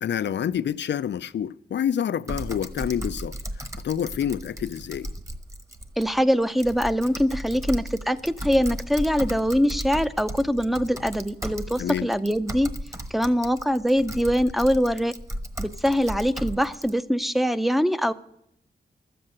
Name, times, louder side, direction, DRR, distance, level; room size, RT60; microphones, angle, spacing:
voice 1, 0.0-3.4 3.8-5.1 11.8-12.1, left 9 dB, 80° left, 0.4 m, -27 dB
Typing, 2.3-16.9, right 1 dB, 15° right, 1.1 m, -35 dB
voice 2, 6.0-12.7 13.1-15.1 15.6-18.1, equal, ahead, 0.5 m, -23 dB
13.0 x 7.8 x 8.7 m
wide cardioid pair, 100°, 18 cm